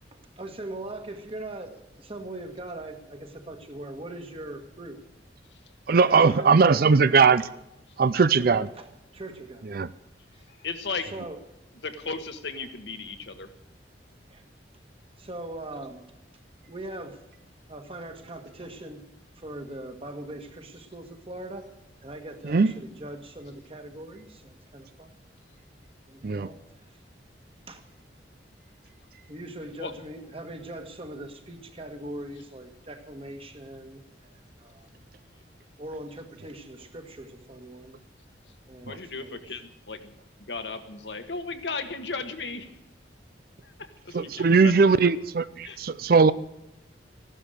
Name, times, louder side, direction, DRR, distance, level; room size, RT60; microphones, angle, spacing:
voice 1, 0.1-5.1 6.0-6.6 8.1-9.9 10.3-10.4 11.1-11.4 14.3-14.4 15.2-16.1 16.7-17.2 17.7-19.1 19.4-25.2 26.1-26.6 27.7-27.8 29.3-34.9 35.8-38.0 38.7-39.6, right 1 dB, 30° right, 6 dB, 1.7 m, -41 dB
voice 2, 5.9-7.5 8.0-8.7 9.7-9.9 22.5-22.7 26.2-26.5 38.9-39.0 44.1-46.3, right 5 dB, 55° right, 16 dB, 0.5 m, -19 dB
voice 3, 10.6-11.1 11.8-13.5 29.8-29.9 38.9-40.1 40.5-42.7 43.6-45.1 45.6-45.8, left 4 dB, 70° left, 6 dB, 1.5 m, -35 dB
15.5 x 12.0 x 6.5 m, 0.90 s
head